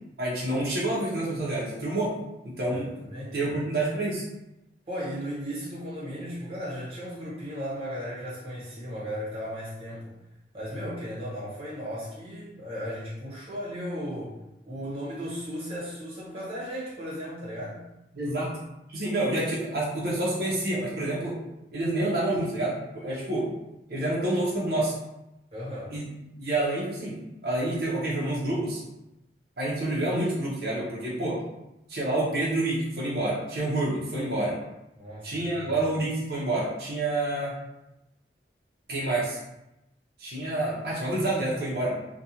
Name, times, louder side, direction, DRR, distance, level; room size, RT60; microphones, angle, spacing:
voice 1, 0.2-2.1 2.4-2.9 3.3-4.2 18.1-18.6 18.9-21.4 21.7-23.5 23.9-24.9 25.9-26.0 26.4-28.8 29.6-31.4 31.9-34.6 35.2-37.5 38.9-39.4 40.2-42.0, right 1 dB, 60° right, -6 dB, 0.7 m, -28 dB
voice 2, 2.7-3.6 4.9-10.1 10.5-14.4 14.6-17.8 25.5-25.9 35.0-35.8, equal, 35° right, -8 dB, 1.1 m, -36 dB
2.4 x 2.2 x 2.8 m, 0.91 s
head